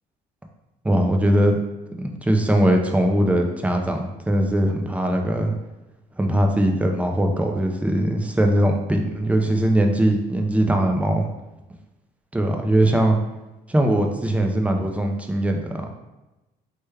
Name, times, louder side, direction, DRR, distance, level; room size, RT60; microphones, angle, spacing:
voice 1, 0.8-1.6 2.0-5.6 6.2-11.3 12.3-13.2 13.7-15.9, right 1 dB, 10° right, 3 dB, 0.4 m, -20 dB
3.2 x 2.2 x 3.3 m, 1.0 s
cardioid pair, 110°, 17 cm